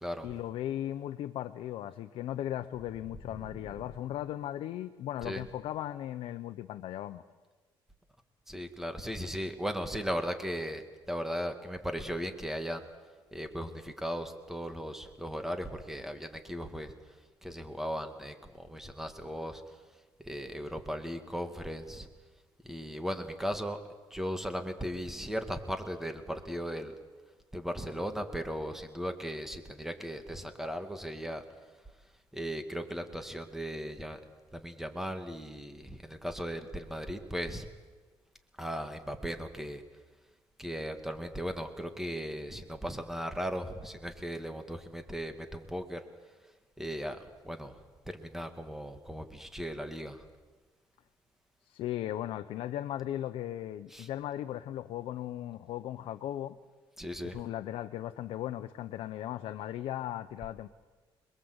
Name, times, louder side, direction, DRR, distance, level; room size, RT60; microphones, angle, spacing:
voice 1, 0.2-7.2 51.6-56.6 57.2-60.7, left 12 dB, 85° left, 9 dB, 0.9 m, -37 dB
voice 2, 8.5-12.9 13.3-16.9 17.4-19.6 20.3-22.1 22.6-23.8 24.1-26.9 27.5-31.4 32.3-34.2 34.5-37.7 38.6-39.8 40.6-46.0 46.8-47.7 48.1-50.3 53.9-54.1 57.0-57.4, equal, 5° right, 7 dB, 2.2 m, -37 dB
27.0 x 21.5 x 8.1 m, 1.3 s
cardioid pair, 110°, 9 cm